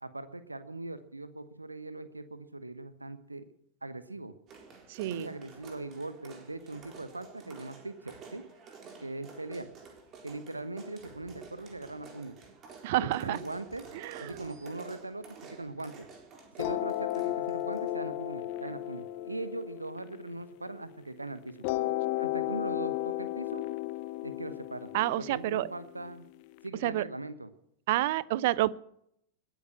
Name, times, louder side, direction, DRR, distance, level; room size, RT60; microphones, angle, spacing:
voice 1, 0.0-3.4 3.8-4.3 5.1-8.4 9.0-9.7 10.2-12.3 13.0-13.8 14.2-16.1 16.6-21.7 22.2-23.6 24.2-26.2 26.6-27.5, right 2 dB, 85° right, 13 dB, 1.0 m, -40 dB
sound 1, 4.5-17.9, right 5 dB, 30° right, 4.1 m, -51 dB
voice 2, 4.9-5.3 12.8-13.4 13.9-14.5 24.9-25.7 26.8-27.0 27.9-28.7, right 16 dB, 50° right, 22 dB, 0.6 m, -29 dB
sound 2, 16.6-21.0 21.6-26.6, left 15 dB, 45° left, 0.9 m, -34 dB
21.0 x 9.2 x 6.6 m, 0.72 s
figure-of-eight pair, 90°, 0 cm